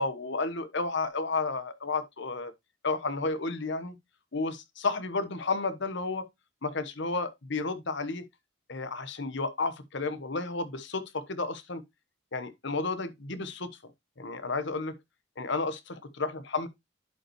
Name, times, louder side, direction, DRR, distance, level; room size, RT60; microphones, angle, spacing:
voice 1, 0.0-2.5 2.8-3.9 4.3-6.2 6.6-8.2 8.7-11.8 12.3-13.7 14.2-15.0 15.4-16.7, left 3 dB, 65° left, 1.1 m, -32 dB
10.5 x 5.4 x 3.0 m
head